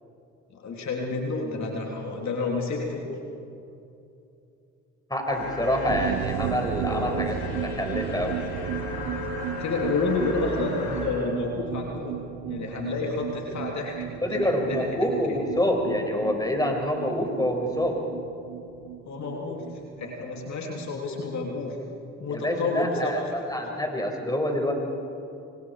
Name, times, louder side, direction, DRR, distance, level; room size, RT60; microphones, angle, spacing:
voice 1, 0.5-3.1 6.9-7.2 9.6-15.4 19.1-21.8 22.2-23.3, left 3 dB, 60° left, 0 dB, 3.5 m, -30 dB
voice 2, 5.1-7.4 7.6-8.4 14.2-18.0 22.3-23.2 23.5-24.7, left 1 dB, 10° left, 2 dB, 6.2 m, -26 dB
sound 1, 5.3-11.1, left 3 dB, 80° left, 6.4 m, -35 dB
sound 2, 5.9-21.3 21.5-21.6 21.9-22.0, right 14 dB, 75° right, 0.8 m, -35 dB
28.0 x 25.0 x 4.9 m, 2.8 s
supercardioid pair, 60°, 32 cm